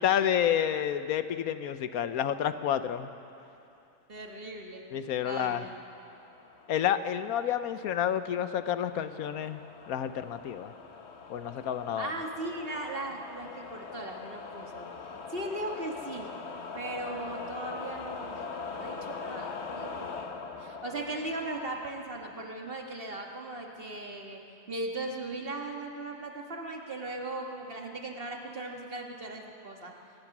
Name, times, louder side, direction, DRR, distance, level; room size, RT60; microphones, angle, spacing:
voice 1, 0.0-3.1 4.9-5.6 6.7-9.6 9.9-10.7 11.3-12.1, left 9 dB, 85° left, 11 dB, 1.3 m, -29 dB
voice 2, 4.1-4.9 5.2-5.7 12.0-14.9 15.3-16.3 16.7-18.4 18.7-20.3 20.6-24.4 24.7-29.9, right 2 dB, 40° right, 1 dB, 1.9 m, -38 dB
sound 1, 6.0-22.4, left 4 dB, 50° left, 1.3 m, -43 dB
24.5 x 18.5 x 6.1 m, 2.7 s
omnidirectional pair, 1.5 m